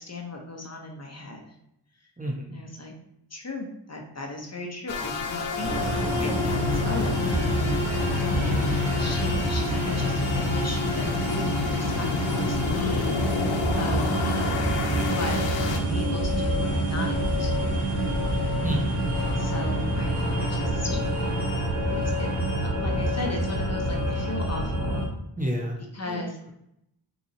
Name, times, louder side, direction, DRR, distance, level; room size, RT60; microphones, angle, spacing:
voice 1, 0.0-1.5 2.5-2.9 3.3-7.5 8.3-14.7 14.9-17.7 19.2-21.0 21.9-22.3 22.6-25.1 25.9-26.5, left 2 dB, 35° left, 1 dB, 0.9 m, -36 dB
voice 2, 2.2-2.6 8.4-8.7 18.6-19.1 25.4-25.8 26.1-26.5, equal, 20° right, 0 dB, 0.7 m, -31 dB
sound 1, 4.9-15.8, left 7 dB, 75° left, 0.6 m, -29 dB
sound 2, 5.6-25.1, right 1 dB, 90° right, 1.0 m, -27 dB
3.8 x 3.0 x 2.7 m, 0.78 s
cardioid pair, 40°, 46 cm